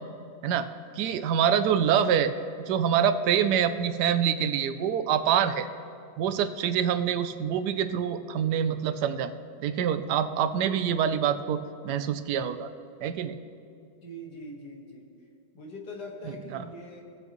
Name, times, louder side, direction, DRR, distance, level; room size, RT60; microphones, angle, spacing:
voice 1, 1.0-2.3 2.7-5.7 6.2-9.3 9.6-12.7 13.0-13.4 16.5-16.6, right 8 dB, 80° right, 11 dB, 1.2 m, -25 dB
voice 2, 14.0-15.1 15.5-17.0, left 1 dB, 80° left, 0 dB, 2.1 m, -42 dB
19.0 x 7.8 x 3.0 m, 2.5 s
omnidirectional pair, 1.8 m